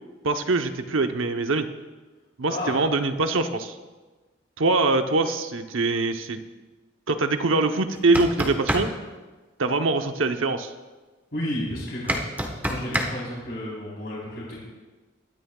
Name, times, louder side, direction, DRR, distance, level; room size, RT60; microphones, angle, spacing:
voice 1, 0.2-1.7 2.4-3.7 4.6-6.4 7.1-8.9 9.6-10.7, right 3 dB, 85° right, 7 dB, 0.9 m, -23 dB
voice 2, 2.5-2.8 11.3-12.2 12.6-14.6, left 1 dB, 55° left, -6 dB, 3.9 m, -32 dB
sound 1, 7.9-8.9 12.1-13.1, right 1 dB, 10° right, 1.2 m, -25 dB
21.5 x 13.0 x 2.4 m, 1.3 s
head